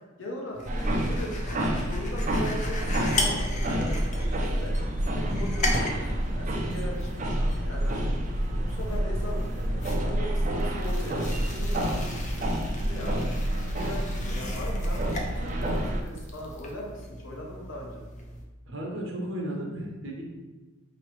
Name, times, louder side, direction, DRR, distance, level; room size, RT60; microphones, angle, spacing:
voice 1, 0.0-4.7 5.0-8.1 8.5-13.3 13.7-18.0, left 1 dB, 70° left, -2 dB, 1.0 m, -39 dB
sound 1, 0.5-18.4, left 2 dB, 35° left, 0.5 m, -38 dB
sound 2, 0.7-16.0, right 1 dB, 40° right, 0.4 m, -28 dB
voice 2, 18.7-20.2, right 1 dB, 65° right, -1 dB, 0.9 m, -34 dB
4.7 x 3.0 x 3.2 m, 1.2 s
head